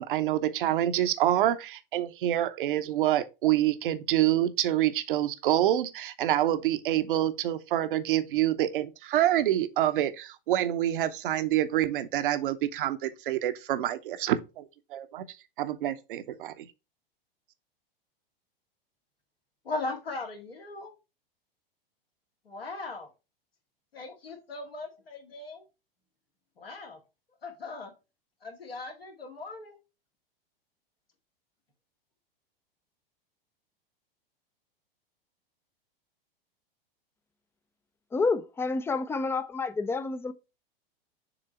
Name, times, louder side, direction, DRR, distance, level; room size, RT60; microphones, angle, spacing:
voice 1, 0.0-15.2 15.6-16.7, right 12 dB, 65° right, 0.8 m, -27 dB
voice 2, 19.6-20.9 22.5-23.1 23.9-25.6 26.6-27.0 27.4-27.9 28.4-29.8, left 3 dB, 85° left, 2.0 m, -38 dB
voice 3, 38.1-40.3, left 3 dB, 10° left, 0.3 m, -29 dB
6.9 x 3.3 x 4.3 m
figure-of-eight pair, 95°, 29 cm